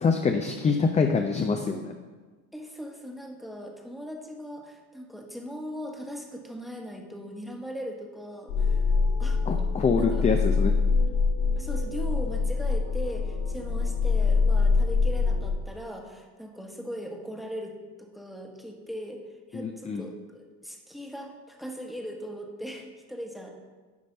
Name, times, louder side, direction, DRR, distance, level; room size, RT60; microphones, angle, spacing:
voice 1, 0.0-1.9 9.5-10.8 19.5-20.0, left 5 dB, 15° left, 4 dB, 0.4 m, -25 dB
voice 2, 2.5-8.8 9.2-9.4 10.0-10.3 11.5-17.7 18.0-23.5, equal, ahead, 1 dB, 1.1 m, -39 dB
sound 1, 8.5-15.5, left 4 dB, 80° left, 2.3 m, -24 dB
9.8 x 3.3 x 5.2 m, 1.3 s
supercardioid pair, 85°, 43 cm